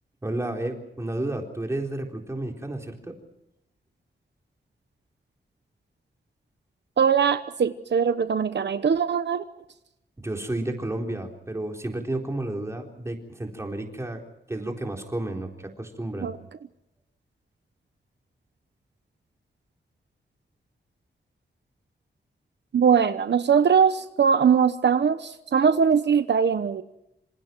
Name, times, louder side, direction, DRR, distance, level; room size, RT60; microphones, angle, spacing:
voice 1, 0.2-3.1 10.2-14.2 14.5-16.3, right 1 dB, 15° right, 4.0 m, -31 dB
voice 2, 7.0-9.4 16.2-16.3 22.7-26.8, right 7 dB, 70° right, 1.0 m, -21 dB
27.0 x 26.5 x 4.6 m
wide cardioid pair, 160°, 18 cm